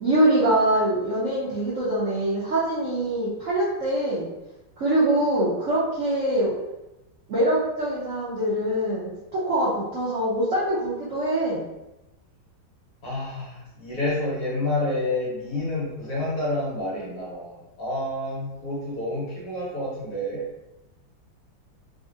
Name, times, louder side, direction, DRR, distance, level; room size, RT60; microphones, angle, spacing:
voice 1, 0.0-4.3 4.8-6.5 7.3-11.6, right 1 dB, 60° right, -9 dB, 0.8 m, -24 dB
voice 2, 13.0-20.5, left 1 dB, 55° left, -7 dB, 1.2 m, -29 dB
3.2 x 2.8 x 2.4 m, 0.96 s
omnidirectional pair, 2.1 m